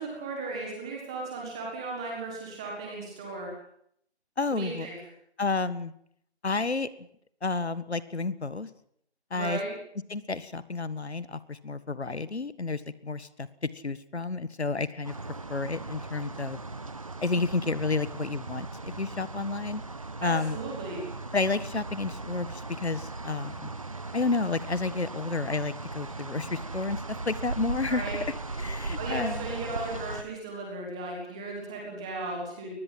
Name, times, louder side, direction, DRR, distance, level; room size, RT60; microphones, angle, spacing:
voice 1, 0.0-3.5 4.5-5.0 9.3-9.7 20.2-21.0 27.9-28.2 28.9-32.7, right 3 dB, 5° right, -1 dB, 1.6 m, -36 dB
voice 2, 4.4-4.9 5.4-5.9 6.4-6.9 7.4-8.7 9.3-9.6 10.1-13.5 13.8-15.1 15.5-16.6 17.2-19.8 20.2-20.6 21.3-23.7 24.1-27.0 27.3-28.1 28.6-29.5, left 3 dB, 70° left, 15 dB, 1.7 m, -30 dB
sound 1, 15.0-30.2, right 3 dB, 30° right, 1.2 m, -38 dB
23.0 x 19.5 x 7.8 m, 0.69 s
figure-of-eight pair, 175°, 34 cm